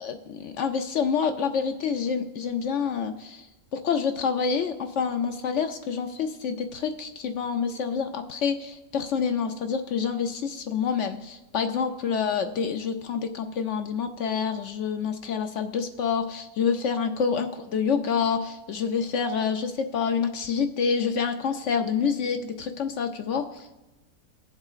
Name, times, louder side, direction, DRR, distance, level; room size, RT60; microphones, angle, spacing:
voice 1, 0.0-3.5 3.7-23.7, left 6 dB, 65° left, 7 dB, 0.7 m, -27 dB
18.5 x 7.6 x 2.4 m, 1.0 s
omnidirectional pair, 1.8 m